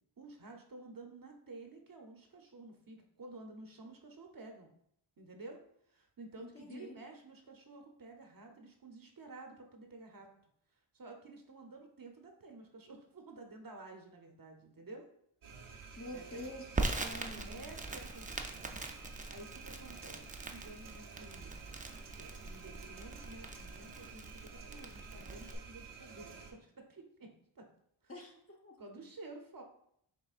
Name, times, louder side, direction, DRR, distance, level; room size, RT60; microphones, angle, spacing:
voice 1, 0.2-4.7 5.2-5.6 5.9-10.3 10.9-15.1 16.1-16.6 17.5-18.8 19.3-21.6 22.2-27.7 28.0-28.1 28.8-29.6, right 2 dB, 45° right, 3 dB, 0.8 m, -52 dB
voice 2, 6.4-6.9 16.0-17.6 28.1-28.8, left 1 dB, 30° left, 0 dB, 0.9 m, -47 dB
sound 1, 15.4-26.5, right 5 dB, 75° right, 0.8 m, -52 dB
Crackle, 16.7-25.5, right 3 dB, 15° right, 0.4 m, -42 dB
5.9 x 3.4 x 2.4 m, 0.70 s
cardioid pair, 55°, 50 cm